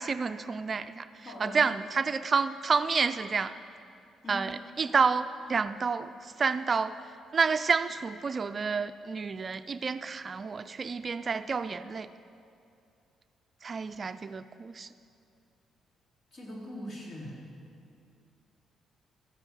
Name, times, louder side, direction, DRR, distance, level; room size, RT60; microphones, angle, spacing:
voice 1, 0.0-1.1 1.4-3.5 4.3-6.1 6.4-7.0 7.3-12.1 13.6-14.9, right 5 dB, 40° right, 11 dB, 0.4 m, -29 dB
voice 2, 1.2-1.8 4.2-4.5 16.3-17.4, left 1 dB, 50° left, -3 dB, 3.4 m, -41 dB
14.0 x 7.9 x 7.4 m, 2.5 s
cardioid pair, 90°, 0 cm